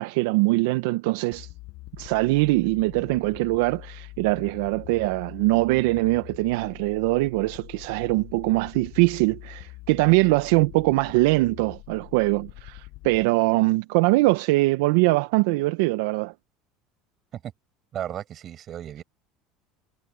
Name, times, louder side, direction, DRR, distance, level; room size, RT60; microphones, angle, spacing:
voice 1, 0.0-1.5 2.0-16.3, right 22 dB, 75° right, 0.8 m, -22 dB
sound 1, 1.3-13.2, left 21 dB, 65° left, 4.9 m, -44 dB
voice 2, 17.9-19.0, right 10 dB, 45° right, 6.8 m, -34 dB
supercardioid pair, 95°, 0 cm